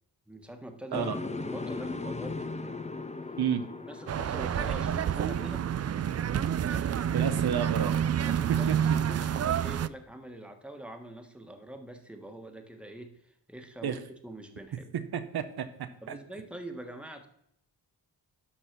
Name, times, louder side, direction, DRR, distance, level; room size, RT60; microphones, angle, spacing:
voice 1, 0.3-1.2 1.4-2.8 3.8-5.8 6.6-7.6 8.2-14.9 16.0-17.3, right 1 dB, 5° right, 5 dB, 1.4 m, -44 dB
sound 1, 0.9-6.9, left 3 dB, 20° left, 0.7 m, -39 dB
sound 2, 4.1-9.9, right 9 dB, 40° right, 0.4 m, -28 dB
voice 2, 7.1-8.0 8.5-8.8 9.1-9.2 13.8-14.0 15.1-16.2, right 8 dB, 75° right, 9 dB, 0.8 m, -31 dB
11.5 x 4.0 x 6.1 m, 0.73 s
cardioid pair, 70°, 38 cm